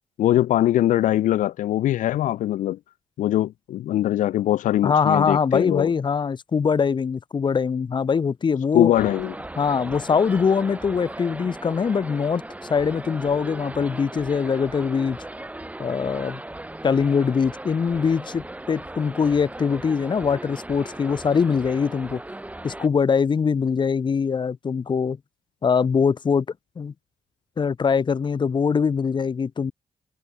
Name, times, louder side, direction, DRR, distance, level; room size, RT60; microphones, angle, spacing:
voice 1, 0.2-2.8 3.2-5.9 8.7-9.3, left 13 dB, 85° left, 0.4 m, -22 dB
voice 2, 4.8-8.9 9.6-12.4 12.7-15.2 15.8-16.4 16.8-22.2 22.6-25.2 25.6-26.5 26.8-26.9 27.6-29.7, left 6 dB, 35° left, 0.8 m, -22 dB
sound 1, 8.9-22.9, right 1 dB, 10° right, 1.8 m, -37 dB
cardioid pair, 100°, 13 cm